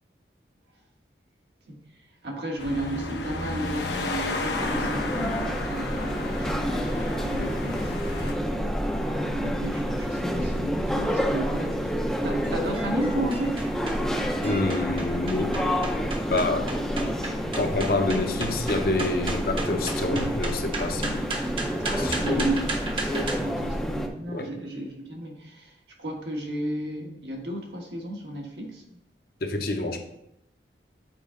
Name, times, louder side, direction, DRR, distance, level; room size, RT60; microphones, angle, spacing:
voice 1, 2.2-6.5 6.8-7.9 9.0-11.9 12.2-13.7 21.8-29.0, right 1 dB, 80° right, 0 dB, 1.4 m, -33 dB
sound 1, 2.6-8.3, left 2 dB, 80° left, 0.9 m, -32 dB
sound 2, 4.6-24.1, equal, 5° left, 0.5 m, -28 dB
sound 3, 12.2-23.4, right 2 dB, 30° right, 0.8 m, -36 dB
voice 2, 14.4-15.6 16.3-16.7 17.5-21.3 22.0-22.5 24.3-24.5 29.4-30.0, left 2 dB, 55° left, 4 dB, 0.8 m, -27 dB
7.0 x 4.7 x 3.7 m, 0.79 s
head